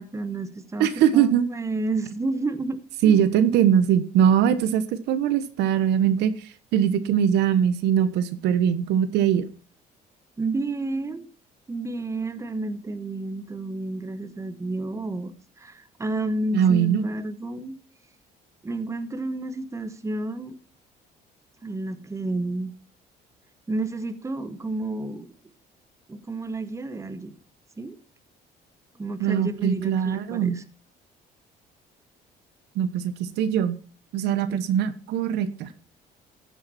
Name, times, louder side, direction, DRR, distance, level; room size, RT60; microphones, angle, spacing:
voice 1, 0.0-3.2 10.4-11.3 11.7-17.8 18.6-20.6 21.6-22.7 23.7-25.3 26.1-27.3 27.8-28.0 28.9-30.6 34.5-34.6, right 2 dB, 15° right, 1.2 m, -31 dB
voice 2, 0.8-1.5 3.0-9.5 16.5-17.1 29.2-30.6 32.7-33.8 34.1-35.7, right 9 dB, 80° right, 1.2 m, -21 dB
15.0 x 8.5 x 4.3 m
cardioid pair, 110°, 17 cm